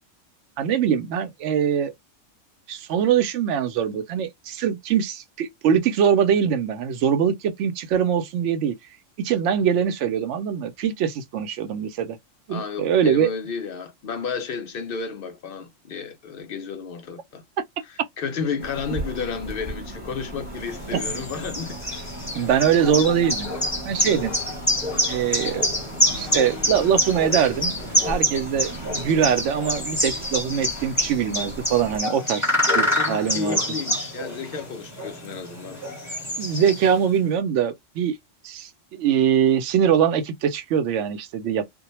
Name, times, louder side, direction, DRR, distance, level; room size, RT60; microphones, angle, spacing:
voice 1, 0.6-1.9 2.7-8.7 9.2-12.2 12.5-13.3 20.9-21.0 22.4-23.5 23.8-24.3 25.1-25.7 26.2-27.8 28.1-33.6 36.4-38.2 38.4-41.6, right 8 dB, 70° right, 0.9 m, -22 dB
voice 2, 12.5-17.4 17.8-21.9 32.8-36.2, left 5 dB, 60° left, 0.6 m, -32 dB
sound 1, 18.6-32.0, right 1 dB, 30° right, 0.7 m, -37 dB
sound 2, 20.6-37.1, equal, 15° left, 0.8 m, -27 dB
2.2 x 2.1 x 2.9 m
omnidirectional pair, 1.3 m